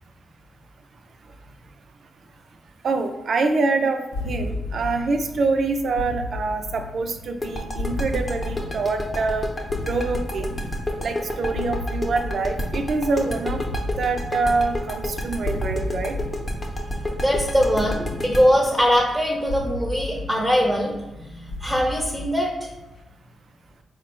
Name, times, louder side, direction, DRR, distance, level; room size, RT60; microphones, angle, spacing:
voice 1, 2.8-9.5 9.8-10.5 11.0-13.6 14.0-16.2, right 3 dB, 65° right, 6 dB, 0.4 m, -25 dB
sound 1, 4.1-23.0, left 2 dB, 70° left, 0.4 m, -34 dB
sound 2, 7.4-20.2, left 1 dB, 30° left, 0.7 m, -29 dB
voice 2, 17.2-22.7, equal, 5° right, -2 dB, 0.6 m, -22 dB
3.7 x 2.1 x 4.3 m, 1.0 s
cardioid pair, 60°, 0 cm